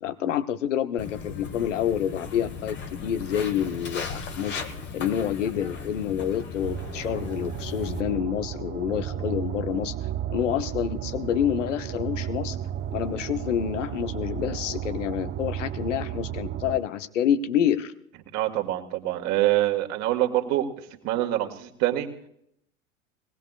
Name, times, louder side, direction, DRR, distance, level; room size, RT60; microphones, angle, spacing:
voice 1, 0.0-4.6 4.9-9.9 10.3-12.6 12.9-17.9, left 9 dB, 65° left, 12 dB, 1.0 m, -28 dB
Walk footsteps, 1.0-8.0, left 5 dB, 30° left, 1.3 m, -37 dB
sound 1, 6.6-16.8, right 11 dB, 25° right, 0.8 m, -33 dB
voice 2, 18.3-20.7 21.0-22.1, right 14 dB, 40° right, 4 dB, 1.9 m, -25 dB
21.0 x 18.5 x 2.4 m, 0.72 s
figure-of-eight pair, 85°, 39 cm